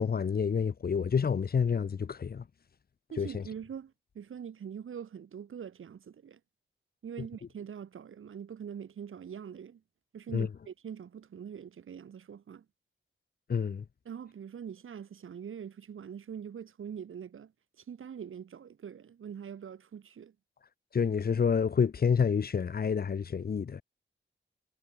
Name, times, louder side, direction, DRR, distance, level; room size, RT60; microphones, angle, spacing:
voice 1, 0.0-2.5 3.2-3.4 10.3-10.5 13.5-13.8 20.9-23.8, left 6 dB, 45° left, 1.1 m, -28 dB
voice 2, 3.1-6.4 7.0-9.8 10.1-12.6 14.1-17.5 17.8-20.3, right 8 dB, 75° right, 4.4 m, -43 dB
wide cardioid pair, 125°, 21 cm